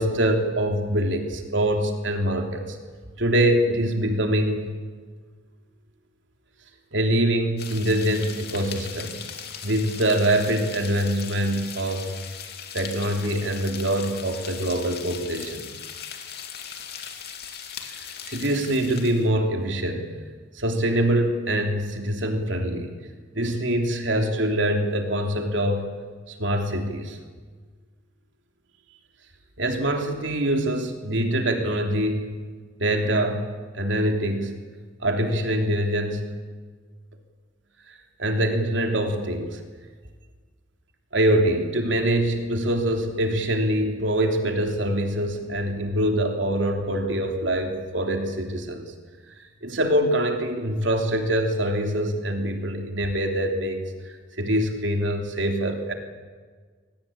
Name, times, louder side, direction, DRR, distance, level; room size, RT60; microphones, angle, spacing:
voice 1, 0.0-2.8 3.2-4.7 6.9-9.2 9.6-12.1 12.7-15.7 17.9-20.1 20.5-22.9 23.3-25.8 26.3-27.2 29.6-32.4 32.8-34.5 35.0-36.3 37.9-39.6 41.1-48.9 49.4-55.9, right 1 dB, 70° right, 4 dB, 3.3 m, -24 dB
sound 1, 7.6-19.3, left 8 dB, 55° left, 2.9 m, -39 dB
24.5 x 19.0 x 8.7 m, 1.5 s
head